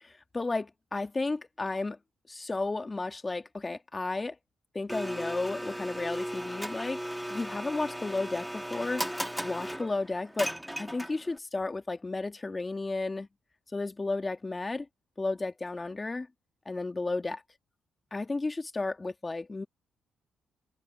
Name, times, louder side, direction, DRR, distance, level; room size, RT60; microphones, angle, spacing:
voice 1, 0.0-2.0 2.3-4.4 4.7-9.1 9.4-10.5 10.8-13.3 13.7-14.9 15.2-16.3 16.7-17.4 18.1-19.7, left 3 dB, 25° left, 1.8 m, -33 dB
Domestic sounds home sounds, 4.9-11.4, equal, 5° right, 2.4 m, -36 dB
supercardioid pair, 55°, 0 cm